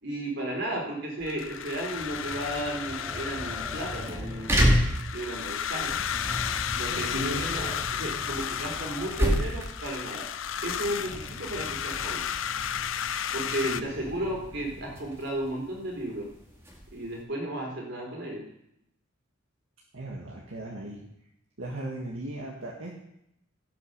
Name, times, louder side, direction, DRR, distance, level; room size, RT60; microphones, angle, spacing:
voice 1, 0.0-4.7 5.1-6.0 6.7-10.3 10.6-12.2 13.3-16.3 16.9-18.4, right 1 dB, 60° right, -1 dB, 3.8 m, -34 dB
sound 1, 1.2-13.8, left 9 dB, 75° left, 0.6 m, -33 dB
sound 2, 1.8-17.2, equal, 15° right, 2.1 m, -32 dB
voice 2, 6.9-7.4 13.5-13.9 19.9-21.0 21.6-22.9, right 1 dB, 80° right, -2 dB, 1.7 m, -36 dB
16.5 x 6.2 x 6.6 m, 0.81 s
head